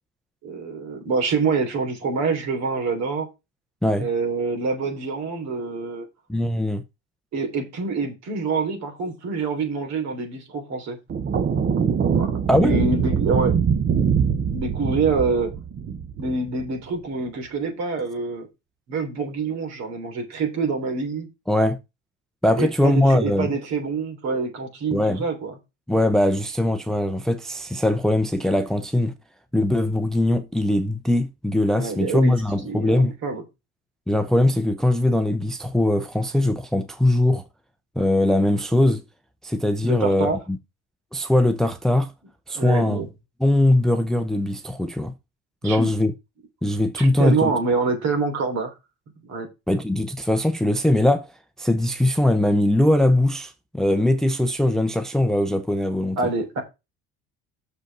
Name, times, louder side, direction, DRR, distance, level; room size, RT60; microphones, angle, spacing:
voice 1, 0.4-3.3 4.0-6.0 7.3-11.0 12.1-13.5 14.5-15.5 16.2-18.5 18.9-21.3 22.6-25.5 31.7-32.3 32.6-33.4 39.8-40.4 42.5-43.1 45.6-45.9 46.9-48.7 49.3-49.5 56.2-56.6, right 4 dB, 60° right, 3.4 m, -26 dB
voice 2, 6.3-6.8 12.5-12.7 21.5-21.8 22.4-23.5 24.9-25.2 25.9-29.1 29.5-33.1 34.1-37.4 38.0-39.0 39.4-40.6 41.1-42.1 42.5-43.0 43.4-45.1 45.6-46.1 46.6-47.5 49.7-51.3 51.6-56.2, left 1 dB, ahead, 0.6 m, -21 dB
sound 1, 11.1-16.7, right 7 dB, 30° right, 0.9 m, -23 dB
6.7 x 5.2 x 6.1 m
cardioid pair, 115°, 31 cm